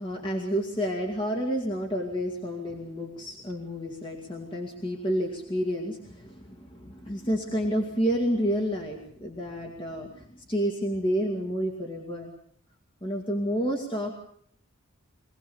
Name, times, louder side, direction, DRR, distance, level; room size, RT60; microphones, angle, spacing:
voice 1, 0.0-12.3 13.0-14.1, equal, 25° left, 0 dB, 2.3 m, -30 dB
24.0 x 18.0 x 7.1 m, 0.62 s
head